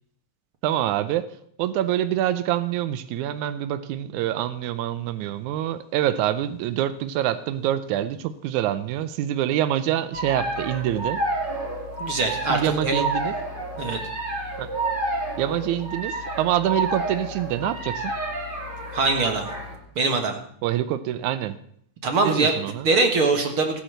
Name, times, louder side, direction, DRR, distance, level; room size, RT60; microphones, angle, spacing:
voice 1, 0.6-1.3 1.6-11.2 12.5-13.3 14.6-14.7 15.4-18.1 20.6-21.6 22.2-22.9, right 12 dB, 85° right, 12 dB, 2.1 m, -26 dB
sound 1, 10.1-19.8, right 2 dB, 15° right, 3.4 m, -30 dB
voice 2, 12.0-13.0 13.8-14.0 18.9-19.5 20.0-20.4 22.0-22.5 22.8-23.8, right 3 dB, 50° right, 5 dB, 2.1 m, -22 dB
14.5 x 10.0 x 6.6 m, 0.67 s
omnidirectional pair, 3.4 m